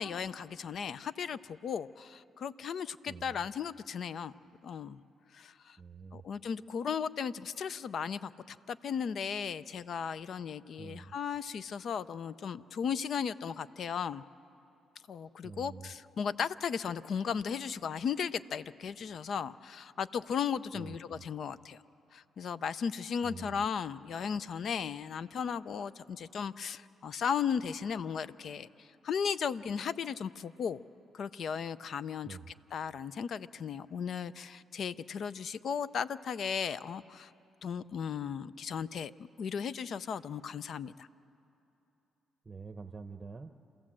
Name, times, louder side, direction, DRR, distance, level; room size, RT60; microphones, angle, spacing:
voice 1, 0.0-4.3 4.6-5.0 5.3-5.8 6.1-14.2 15.1-21.8 22.1-30.8 31.1-32.4 32.7-37.3 37.6-41.1, left 7 dB, 60° left, 16 dB, 0.5 m, -36 dB
voice 2, 3.1-3.4 5.8-6.2 10.8-11.1 15.4-15.9 20.7-21.2 23.2-23.6 32.2-32.5 42.4-43.5, right 4 dB, 25° right, 7 dB, 0.8 m, -46 dB
27.5 x 16.0 x 7.5 m, 2.9 s
cardioid pair, 90°, 0 cm